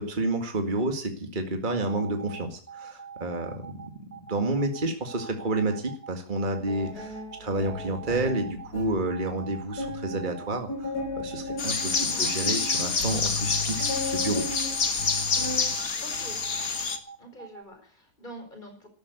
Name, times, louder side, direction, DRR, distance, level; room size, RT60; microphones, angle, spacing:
voice 1, 0.0-3.9 4.3-10.9 11.2-14.5, right 2 dB, 30° right, 5 dB, 2.1 m, -30 dB
sound 1, 1.7-17.6, right 6 dB, 10° right, 1.6 m, -43 dB
sound 2, 6.7-9.1 9.4-9.5 9.8-15.8 16.1-16.5, left 3 dB, 80° left, 5.4 m, -35 dB
sound 3, 11.6-17.0, left 5 dB, 60° left, 2.2 m, -27 dB
voice 2, 16.0-16.4 17.2-18.9, right 1 dB, 30° left, 5 dB, 5.1 m, -45 dB
13.0 x 13.0 x 8.2 m, 0.43 s
omnidirectional pair, 1.7 m